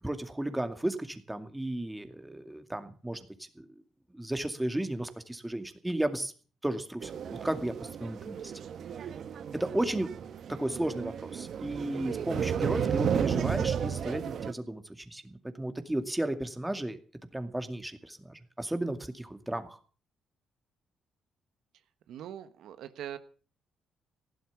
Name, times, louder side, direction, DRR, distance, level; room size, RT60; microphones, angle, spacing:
voice 1, 0.0-3.3 3.6-3.7 4.1-6.3 6.6-8.5 9.5-10.1 10.5-17.0 17.3-19.8, right 1 dB, 10° right, 8 dB, 2.3 m, -34 dB
sound 1, 7.0-14.5, right 8 dB, 60° right, 1.1 m, -33 dB
voice 2, 22.1-23.2, right 10 dB, 80° right, 10 dB, 1.3 m, -42 dB
15.5 x 12.0 x 7.2 m, 0.41 s
cardioid pair, 90°, 0 cm